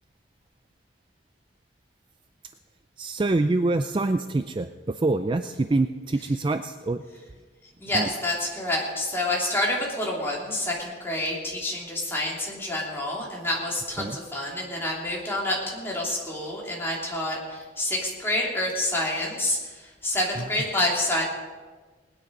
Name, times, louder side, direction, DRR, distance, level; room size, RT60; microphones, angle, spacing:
voice 1, 3.0-7.0 7.9-8.1 14.0-14.2 20.3-20.5, right 2 dB, 25° right, 9 dB, 0.4 m, -25 dB
voice 2, 7.8-19.6 20.0-21.2, left 1 dB, 10° left, -4 dB, 3.0 m, -28 dB
19.5 x 10.0 x 5.3 m, 1.4 s
head